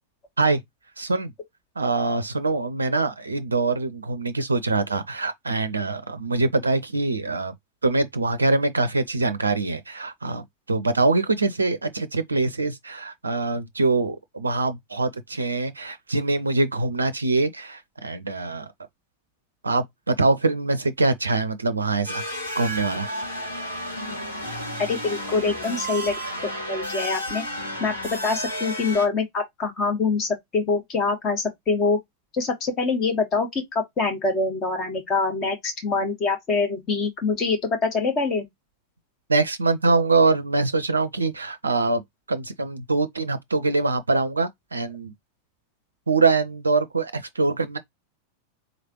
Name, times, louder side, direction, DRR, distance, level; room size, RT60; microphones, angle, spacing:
voice 1, 1.0-1.3 1.8-7.5 7.8-18.7 19.6-22.2 22.6-23.1 39.3-42.0 42.3-45.1 46.1-47.8, right 3 dB, 75° right, 0.4 m, -24 dB
sound 1, 22.0-29.0, equal, 80° left, 2.2 m, -32 dB
voice 2, 24.8-26.1 26.4-27.4 27.8-32.0 32.3-38.4, left 4 dB, 30° left, 1.7 m, -25 dB
3.9 x 3.2 x 2.8 m
figure-of-eight pair, 90°, 0 cm